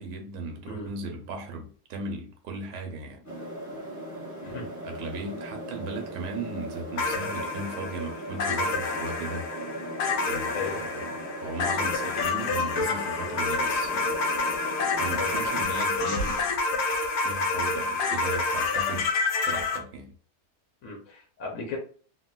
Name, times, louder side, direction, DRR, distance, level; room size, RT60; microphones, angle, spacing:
voice 1, 0.0-3.3 4.8-9.4 10.3-14.2 14.9-16.5 17.2-19.1 19.4-20.1, right 3 dB, 90° right, 1.2 m, -37 dB
sound 1, 3.2-15.6, equal, 15° left, 0.7 m, -38 dB
sound 2, 7.0-19.8, left 4 dB, 85° left, 1.2 m, -28 dB
voice 2, 20.8-21.8, left 4 dB, 65° left, 0.9 m, -35 dB
3.5 x 2.1 x 2.2 m
omnidirectional pair, 1.7 m